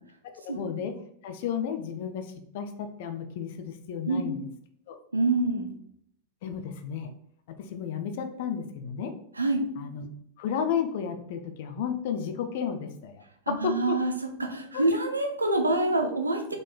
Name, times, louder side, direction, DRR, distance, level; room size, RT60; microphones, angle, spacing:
voice 1, 0.4-0.9 1.2-4.4 4.9-5.0 6.4-7.1 7.5-9.1 9.8-10.1 10.4-14.0 14.7-14.8, left 7 dB, 50° left, 7 dB, 0.5 m, -32 dB
voice 2, 5.1-5.6 9.4-9.7 13.5-14.1 14.4-16.6, right 2 dB, 80° right, 4 dB, 0.5 m, -26 dB
3.8 x 3.6 x 2.2 m, 0.69 s
figure-of-eight pair, 90°, 0 cm